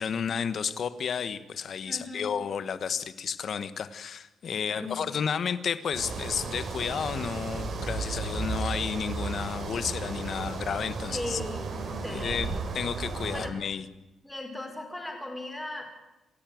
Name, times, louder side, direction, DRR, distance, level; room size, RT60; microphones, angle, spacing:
voice 1, 0.0-11.4 12.1-13.9, left 7 dB, 45° left, 13 dB, 1.3 m, -32 dB
voice 2, 1.8-2.4 4.5-5.1 11.1-12.7 13.2-13.5 14.2-15.8, left 1 dB, 5° left, 3 dB, 4.9 m, -38 dB
sound 1, 5.9-13.5, right 4 dB, 45° right, 3.9 m, -34 dB
27.0 x 15.5 x 9.4 m, 0.97 s
cardioid pair, 170°, 0 cm